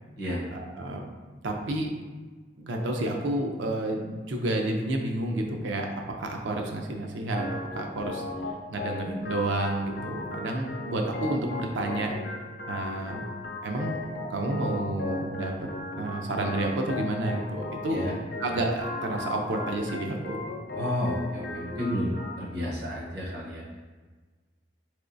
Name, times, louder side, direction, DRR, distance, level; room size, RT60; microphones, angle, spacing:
voice 1, 0.5-1.1 1.4-1.9 2.6-5.9 6.2-7.5 7.7-8.2 8.7-12.1 12.7-13.2 13.6-14.0 14.3-15.5 16.0-18.1 18.4-20.4, right 2 dB, 75° right, 2 dB, 0.5 m, -30 dB
Organ, 7.4-22.4, left 2 dB, 50° left, 0.4 m, -37 dB
voice 2, 20.7-23.6, left 1 dB, 60° right, -4 dB, 0.9 m, -31 dB
3.3 x 3.1 x 2.6 m, 1.3 s
head